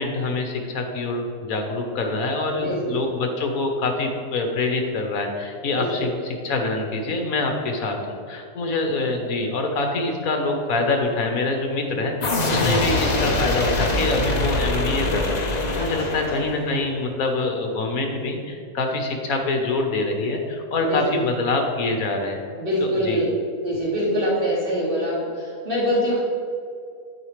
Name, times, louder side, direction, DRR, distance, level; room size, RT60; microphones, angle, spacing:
voice 1, 0.0-22.4 22.8-23.3, left 2 dB, 65° left, 3 dB, 1.4 m, -25 dB
voice 2, 2.5-3.1 5.8-6.1 15.8-16.2 20.8-21.3 22.6-23.3 23.6-26.2, equal, 35° right, -6 dB, 2.3 m, -24 dB
sound 1, 12.2-16.9, left 2 dB, 40° left, 0.6 m, -23 dB
12.0 x 5.0 x 3.2 m, 2.4 s
omnidirectional pair, 1.7 m